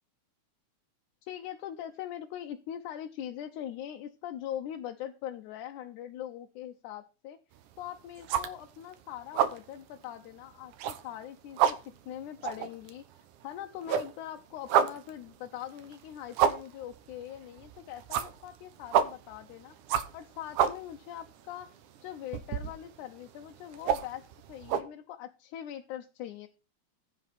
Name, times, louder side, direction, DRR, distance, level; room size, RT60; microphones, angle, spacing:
voice 1, 1.2-7.4 7.8-13.1 13.4-19.8 20.1-21.7 22.0-26.5, left 11 dB, 80° left, 4 dB, 2.3 m, -42 dB
sound 1, 7.6-7.9 8.2-8.9 9.2-9.7 10.0-10.1 10.6-11.2 11.5-13.5 13.8-24.8, right 9 dB, 85° right, 2.5 m, -30 dB
15.0 x 7.9 x 4.2 m, 0.32 s
omnidirectional pair, 3.5 m